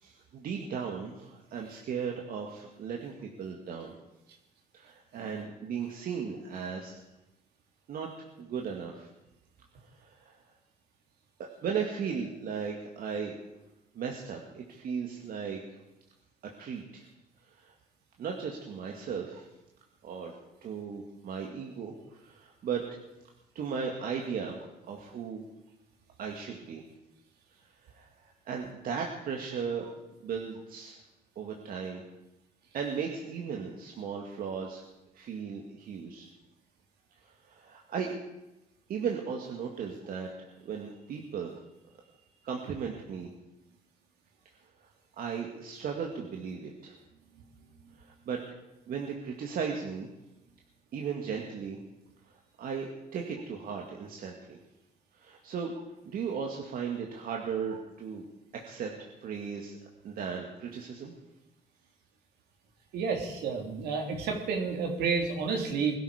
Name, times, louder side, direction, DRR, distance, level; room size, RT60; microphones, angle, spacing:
voice 1, 0.0-3.9 4.7-7.0 7.9-8.1 8.4-9.1 10.0-10.4 11.4-13.4 13.9-15.8 16.6-17.1 17.5-17.7 18.2-19.5 20.0-20.3 20.6-22.9 23.6-24.6 24.8-25.4 26.2-26.8 27.8-29.9 30.2-31.0 31.4-32.0 32.7-34.8 35.1-36.3 37.5-38.2 38.9-41.5 42.4-43.3 45.2-46.9 48.0-48.4 48.9-50.1 50.9-51.8 52.6-54.6 55.2-55.7 56.1-58.3 58.5-59.7 60.0-61.1, right 6 dB, 60° right, 1 dB, 2.1 m, -36 dB
voice 2, 62.9-66.0, right 5 dB, 75° right, 2 dB, 3.4 m, -30 dB
21.0 x 13.0 x 5.1 m, 0.96 s
cardioid pair, 110°, 17 cm